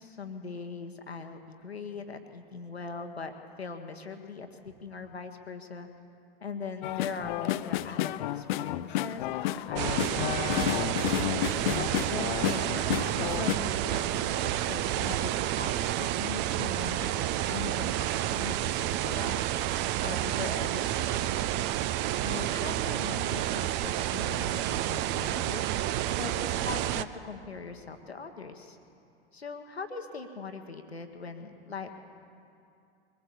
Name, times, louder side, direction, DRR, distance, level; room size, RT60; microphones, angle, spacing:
voice 1, 0.0-3.3 3.6-5.9 6.4-10.8 11.5-21.6 22.2-28.8 29.3-31.9, left 4 dB, 85° left, 5 dB, 1.3 m, -41 dB
sound 1, 6.8-13.5, left 14 dB, 50° left, 0.6 m, -31 dB
sound 2, 9.8-27.0, right 13 dB, 35° right, 0.6 m, -30 dB
22.5 x 19.0 x 7.3 m, 2.6 s
figure-of-eight pair, 85°, 31 cm